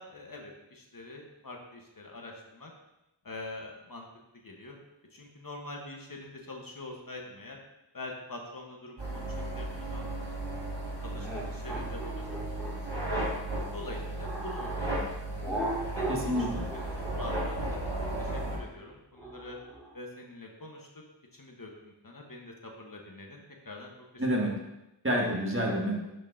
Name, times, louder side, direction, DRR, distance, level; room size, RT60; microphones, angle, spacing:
voice 1, 0.0-2.7 3.2-4.1 4.3-4.7 5.1-7.6 7.9-10.0 11.0-12.0 12.5-12.6 12.9-13.0 13.7-15.1 15.4-15.5 16.0-16.5 16.7-16.9 17.2-17.8 18.2-19.6 19.9-20.9 21.3-24.3, left 2 dB, 50° left, 0 dB, 1.0 m, -44 dB
sound 1, 9.0-18.6, right 1 dB, 70° right, 2.4 m, -35 dB
sound 2, 11.2-14.8 15.4-19.9, right 1 dB, ahead, 2.3 m, -38 dB
voice 2, 16.1-16.7 24.2-24.6 25.0-26.0, equal, 30° right, -2 dB, 1.5 m, -28 dB
11.0 x 4.4 x 2.5 m, 0.91 s
wide cardioid pair, 40°, 43 cm